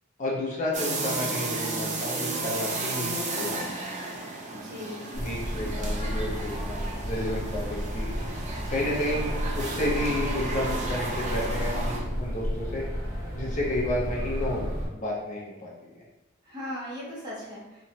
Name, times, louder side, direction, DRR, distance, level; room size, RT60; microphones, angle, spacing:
voice 1, 0.2-3.7 5.1-8.1 8.7-12.8 13.3-15.9, left 1 dB, 40° left, -4 dB, 0.5 m, -31 dB
sound 1, 0.7-12.0, right 3 dB, 35° right, 0.4 m, -33 dB
voice 2, 4.5-5.2 5.6-5.7 16.4-17.8, left 1 dB, 20° right, -7 dB, 0.9 m, -38 dB
sound 2, 5.1-14.9, equal, 80° right, 0.8 m, -32 dB
2.9 x 2.2 x 2.7 m, 1.0 s
head